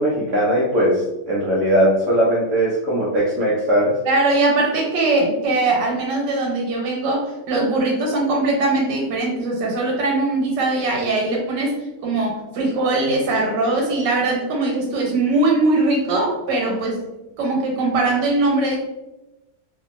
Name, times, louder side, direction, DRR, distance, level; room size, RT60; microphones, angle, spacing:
voice 1, 0.0-4.0, equal, 65° right, -5 dB, 0.8 m, -19 dB
voice 2, 4.0-17.0 17.4-18.8, right 2 dB, 85° right, 0 dB, 1.4 m, -21 dB
2.8 x 2.6 x 2.5 m, 1.0 s
omnidirectional pair, 1.9 m